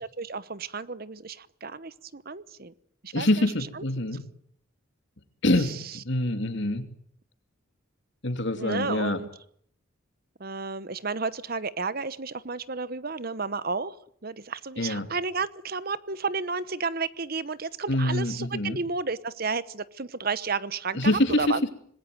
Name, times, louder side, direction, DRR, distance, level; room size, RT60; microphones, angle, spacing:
voice 1, 0.0-2.7 3.0-3.8 5.6-6.0 8.6-9.3 10.4-14.0 14.2-21.6, right 4 dB, 45° right, 16 dB, 1.0 m, -32 dB
voice 2, 3.1-4.2 5.4-6.9 8.2-9.2 14.8-15.1 17.9-18.8 20.9-21.7, left 1 dB, 60° left, 8 dB, 3.0 m, -25 dB
26.5 x 20.5 x 9.5 m, 0.66 s
head